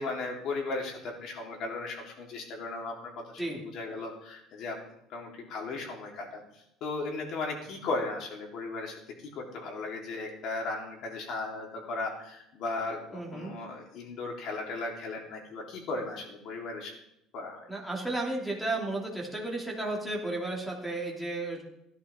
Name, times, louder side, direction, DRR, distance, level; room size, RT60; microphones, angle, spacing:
voice 1, 0.0-4.8 5.1-6.4 6.8-16.9 17.3-17.7, left 3 dB, 55° left, -1 dB, 3.8 m, -36 dB
voice 2, 13.1-13.5 17.7-21.6, right 2 dB, ahead, 0 dB, 2.7 m, -33 dB
16.5 x 11.5 x 3.7 m, 0.82 s
cardioid pair, 140°, 0 cm